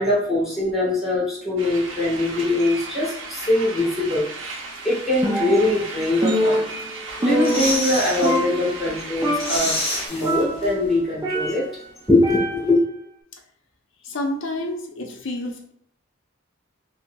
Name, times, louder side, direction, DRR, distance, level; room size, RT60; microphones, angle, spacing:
voice 1, 0.0-4.3 4.8-6.7 7.2-11.6 12.1-12.8, left 2 dB, ahead, -8 dB, 1.4 m, -22 dB
sound 1, 1.6-10.1, right 3 dB, 65° right, 0.6 m, -35 dB
Percussion, 5.2-5.9 6.2-8.0 8.2-8.9 9.2-9.7 10.2-11.8 12.2-12.9, equal, 15° right, 0.4 m, -25 dB
sound 2, 7.1-8.4 8.8-8.9 9.2-10.9 11.2-11.3, left 1 dB, 25° left, 1.2 m, -28 dB
voice 2, 14.0-15.7, left 1 dB, 65° left, 3 dB, 0.6 m, -30 dB
5.4 x 2.0 x 2.2 m, 0.67 s
head